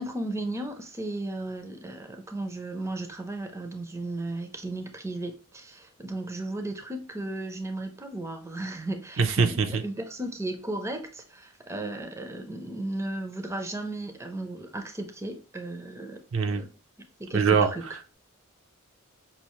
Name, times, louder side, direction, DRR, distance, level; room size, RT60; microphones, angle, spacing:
voice 1, 0.0-16.7 17.2-18.0, right 2 dB, 15° right, 0.5 m, -35 dB
voice 2, 9.2-9.8 16.3-16.6 17.3-17.7, right 5 dB, 60° right, 0.5 m, -22 dB
5.6 x 2.4 x 3.0 m
head